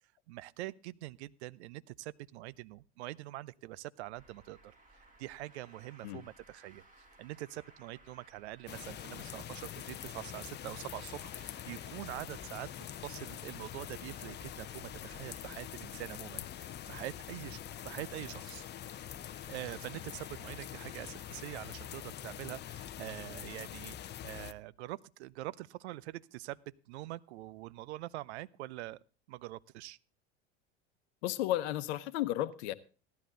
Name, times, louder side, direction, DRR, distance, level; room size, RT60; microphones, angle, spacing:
voice 1, 0.3-6.8 7.2-12.7 13.0-18.7 19.5-29.0 29.3-30.0, right 17 dB, 65° right, 0.6 m, -44 dB
Traffic noise roadway noise, 4.1-22.0, right 2 dB, 20° right, 3.4 m, -60 dB
sound 1, 8.7-24.5, left 11 dB, 30° left, 0.6 m, -45 dB
voice 2, 31.2-32.7, left 14 dB, 65° left, 1.0 m, -33 dB
16.0 x 10.5 x 3.9 m
hypercardioid pair, 75°, 35 cm